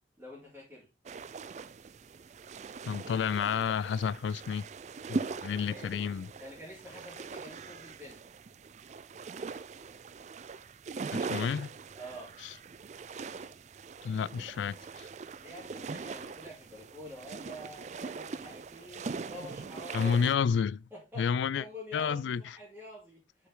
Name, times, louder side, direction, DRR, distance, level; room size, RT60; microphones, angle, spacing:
voice 1, 0.2-0.9 5.4-6.0 6.4-8.2 12.0-12.3 15.4-20.3 20.9-23.2, equal, 10° right, 2.4 m, -47 dB
sound 1, 1.1-20.4, right 4 dB, 40° right, 0.4 m, -41 dB
voice 2, 2.9-4.6 5.1-6.3 11.1-11.7 12.4-12.5 14.0-15.1 19.9-20.8 21.2-21.6 21.9-22.6, left 6 dB, 85° left, 0.3 m, -30 dB
6.3 x 5.8 x 3.7 m
head